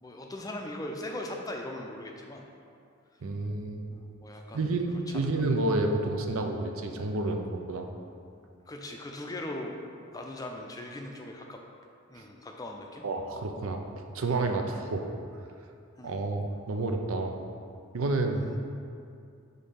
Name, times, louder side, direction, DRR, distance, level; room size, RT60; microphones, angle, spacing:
voice 1, 0.0-2.5 3.9-5.3 8.7-9.8 10.1-11.6 12.1-13.0 16.0-16.3 18.3-18.6, left 1 dB, 15° left, 2 dB, 0.4 m, -40 dB
voice 2, 3.2-3.8 4.5-7.9 13.0-13.8 14.1-15.1 16.0-17.4 17.9-18.4, right 2 dB, 85° right, 4 dB, 0.6 m, -29 dB
5.2 x 4.2 x 5.7 m, 2.5 s
head